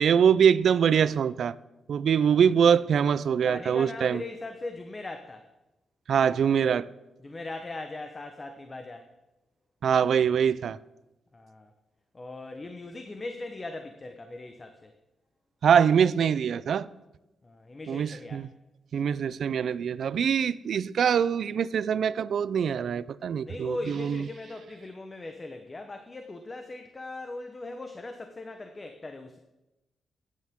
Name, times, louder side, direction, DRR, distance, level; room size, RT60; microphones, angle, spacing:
voice 1, 0.0-1.5 1.9-4.2 6.1-6.9 9.8-10.8 15.6-16.9 17.9-18.5 18.9-24.3, right 7 dB, 65° right, 0.4 m, -23 dB
voice 2, 3.3-5.5 7.2-9.1 11.3-11.7 12.1-14.9 17.4-18.4 23.4-29.4, left 2 dB, 25° left, 0.8 m, -39 dB
14.0 x 9.7 x 3.6 m
cardioid pair, 100°, 0 cm